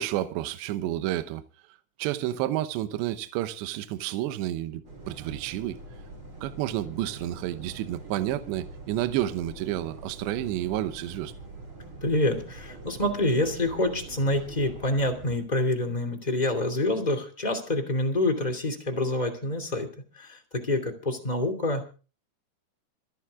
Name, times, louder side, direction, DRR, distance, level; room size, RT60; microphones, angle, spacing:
voice 1, 0.0-1.4 2.0-5.8 6.4-11.3, right 13 dB, 75° right, 2.9 m, -30 dB
sound 1, 4.8-15.4, right 2 dB, 25° right, 6.3 m, -44 dB
voice 2, 12.0-19.9 20.1-21.8, left 1 dB, 15° left, 1.5 m, -27 dB
27.0 x 9.4 x 3.6 m
omnidirectional pair, 5.4 m